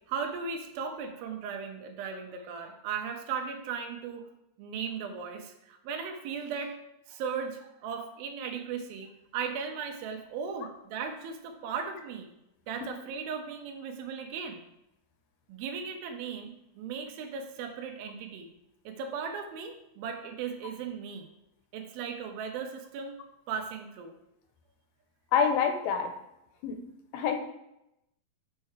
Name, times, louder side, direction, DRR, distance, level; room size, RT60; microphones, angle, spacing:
voice 1, 0.1-4.3 4.6-6.8 7.1-12.3 12.7-14.6 15.5-18.5 18.9-21.3 21.7-23.2 23.5-24.2, right 6 dB, 80° right, 4 dB, 2.7 m, -37 dB
voice 2, 25.3-26.1 26.6-26.8 27.1-27.4, left 6 dB, 85° left, 6 dB, 2.6 m, -26 dB
6.6 x 6.2 x 4.6 m, 0.86 s
omnidirectional pair, 4.3 m